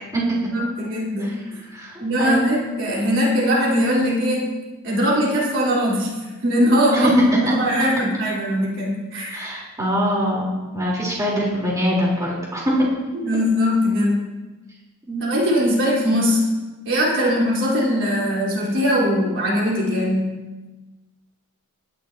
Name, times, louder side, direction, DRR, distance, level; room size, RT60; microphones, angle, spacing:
voice 1, 0.5-1.4 2.0-4.5 4.8-6.1 6.4-7.1 7.4-9.5 13.1-14.2 15.2-16.4 16.8-20.4, equal, 55° right, -5 dB, 4.4 m, -20 dB
voice 2, 1.7-2.5 6.9-7.5 9.3-10.5 10.7-12.7 15.1-15.3, equal, 15° right, -5 dB, 4.2 m, -22 dB
19.0 x 12.0 x 3.0 m, 1.2 s
head